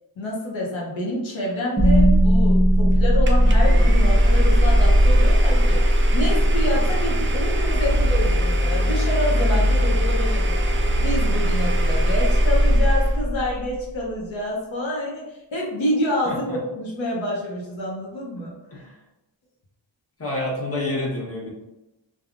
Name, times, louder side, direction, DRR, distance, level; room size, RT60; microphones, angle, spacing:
voice 1, 0.2-18.5, left 1 dB, 80° left, -3 dB, 0.8 m, -28 dB
sound 1, 1.8-13.9, equal, 5° right, 0.9 m, -18 dB
Domestic sounds home sounds, 3.3-13.2, right 2 dB, 30° right, 0.3 m, -32 dB
voice 2, 16.2-16.6 18.7-18.9 20.2-21.5, left 1 dB, 30° left, -4 dB, 1.0 m, -28 dB
3.3 x 2.3 x 2.4 m, 0.95 s
wide cardioid pair, 85°, 46 cm